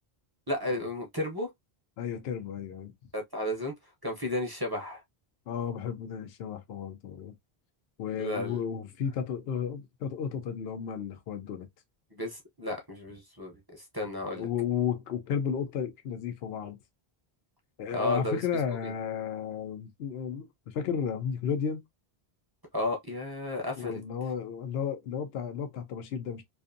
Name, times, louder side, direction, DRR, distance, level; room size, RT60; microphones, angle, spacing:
voice 1, 0.5-1.5 3.1-3.7 4.0-5.0 8.2-8.6 12.1-14.5 17.9-18.4 18.8-18.9 22.7-24.0, left 1 dB, 25° right, 0.6 m, -33 dB
voice 2, 2.0-2.9 5.5-7.3 8.0-11.7 14.3-16.8 17.8-21.8 23.8-26.4, left 7 dB, 75° left, 0.8 m, -33 dB
2.5 x 2.5 x 2.5 m
omnidirectional pair, 1.0 m